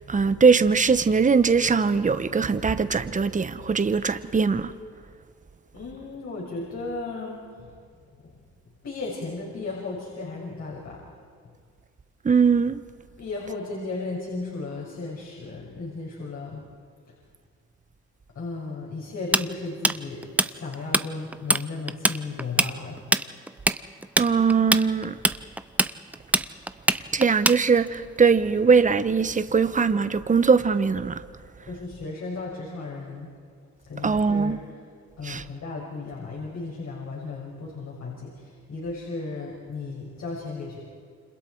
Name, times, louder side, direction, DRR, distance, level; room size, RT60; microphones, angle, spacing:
voice 1, 0.1-4.7 12.2-12.8 24.2-25.2 27.1-31.2 34.0-34.6 35.2-35.4, right 5 dB, 25° right, 11 dB, 1.1 m, -21 dB
voice 2, 5.7-7.7 8.2-8.4 8.8-11.0 13.2-16.6 18.3-23.0 31.7-33.3 33.9-34.6 35.2-40.8, left 3 dB, 60° left, -5 dB, 6.3 m, -35 dB
Tools, 19.3-21.1 21.3-21.6 21.9-28.0, right 1 dB, 5° right, 0.6 m, -22 dB
29.0 x 26.5 x 4.7 m, 2.1 s
cardioid pair, 90°, 30 cm